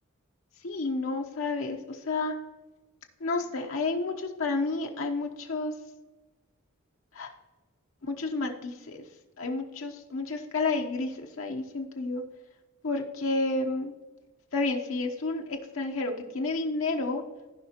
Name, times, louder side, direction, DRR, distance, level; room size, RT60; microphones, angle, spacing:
voice 1, 0.6-2.3 3.2-5.7 7.1-7.3 8.2-8.5 9.4-12.2 12.8-13.9 14.5-17.2, left 3 dB, 75° left, 2 dB, 0.9 m, -30 dB
15.5 x 5.3 x 2.9 m, 1.2 s
head